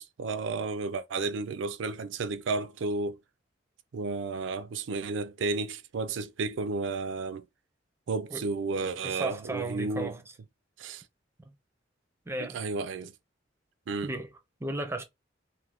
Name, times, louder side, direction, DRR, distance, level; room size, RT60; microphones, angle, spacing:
voice 1, 0.0-3.2 3.9-7.5 8.1-10.1 10.8-11.0 12.4-13.1 13.9-14.1, right 3 dB, 75° right, 0.4 m, -32 dB
voice 2, 9.0-10.2 11.5-11.6 12.3-12.6 14.0-14.3 14.6-15.0, right 2 dB, 15° right, 0.5 m, -34 dB
2.6 x 2.5 x 3.3 m
head